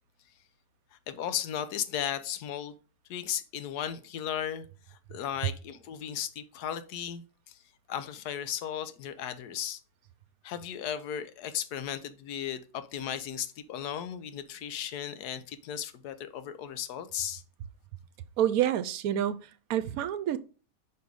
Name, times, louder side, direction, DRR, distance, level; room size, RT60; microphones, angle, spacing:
voice 1, 1.1-2.7 3.1-7.6 7.9-9.8 10.4-17.4, left 9 dB, 85° left, 1.2 m, -36 dB
voice 2, 18.4-20.4, right 11 dB, 75° right, 1.0 m, -28 dB
5.3 x 5.2 x 4.7 m
omnidirectional pair, 1.6 m